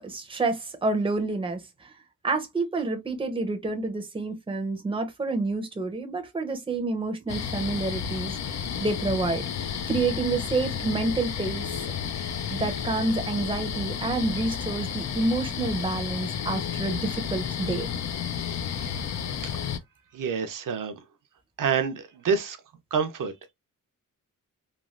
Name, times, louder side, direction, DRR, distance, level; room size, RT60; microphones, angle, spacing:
voice 1, 0.0-1.9 2.2-11.7 12.3-17.9, right 3 dB, 15° right, 0.6 m, -29 dB
sound 1, 7.3-19.8, left 8 dB, 55° left, 0.4 m, -32 dB
voice 2, 20.1-21.0 21.6-22.6 22.9-23.5, right 6 dB, 65° right, 0.6 m, -27 dB
3.2 x 2.3 x 2.4 m
wide cardioid pair, 120°, 34 cm